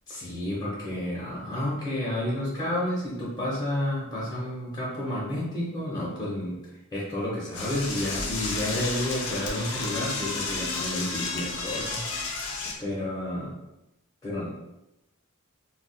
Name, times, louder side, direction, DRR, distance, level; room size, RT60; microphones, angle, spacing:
voice 1, 0.1-6.6 6.9-12.0 12.8-13.5 14.2-14.5, left 1 dB, 20° left, -7 dB, 0.9 m, -30 dB
Door / Toilet flush, 7.5-12.7, left 3 dB, 65° left, 0.6 m, -32 dB
2.4 x 2.3 x 3.9 m, 0.92 s
head